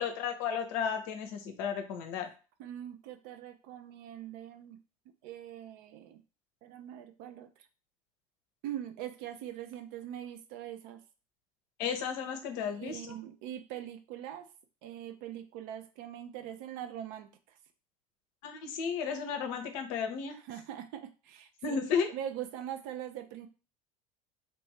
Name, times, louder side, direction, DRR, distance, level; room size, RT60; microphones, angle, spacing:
voice 1, 0.0-2.3 11.8-13.0 18.4-20.4 21.6-22.1, left 6 dB, 50° left, 6 dB, 0.7 m, -33 dB
voice 2, 2.6-4.8 5.2-6.2 6.6-7.7 8.6-11.0 12.6-14.5 14.8-17.6 20.4-21.8 22.1-23.5, right 11 dB, 50° right, 8 dB, 0.5 m, -42 dB
3.3 x 2.6 x 3.2 m, 0.34 s
figure-of-eight pair, 70°, 18 cm